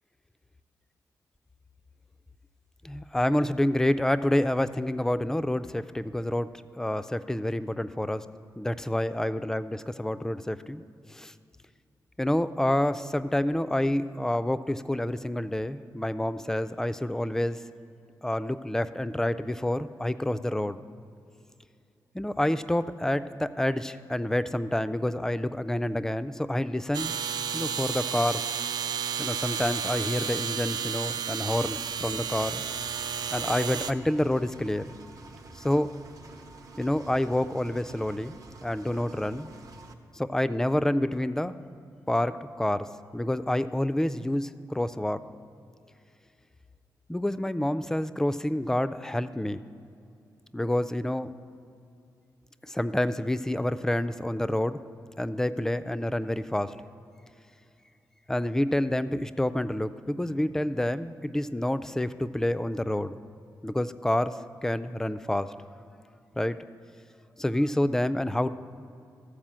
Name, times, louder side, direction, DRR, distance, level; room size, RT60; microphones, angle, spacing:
voice 1, 2.8-6.5 6.8-8.2 8.6-10.8 11.1-11.3 12.2-17.6 18.2-20.8 22.1-27.2 27.5-28.5 29.2-32.6 33.3-35.0 35.5-35.9 36.8-38.3 38.6-39.5 40.1-41.5 42.1-42.9 43.1-45.2 47.1-49.6 50.5-51.3 52.7-54.8 55.2-56.7 58.3-63.2 63.6-65.5 66.4-66.6 67.4-68.5, left 1 dB, 5° left, 13 dB, 0.3 m, -28 dB
sound 1, 26.9-33.9, right 7 dB, 75° right, 0.4 m, -32 dB
Engine, 31.5-39.9, right 3 dB, 55° right, 0.8 m, -49 dB
14.0 x 4.9 x 7.4 m, 2.5 s
wide cardioid pair, 130°, 7 cm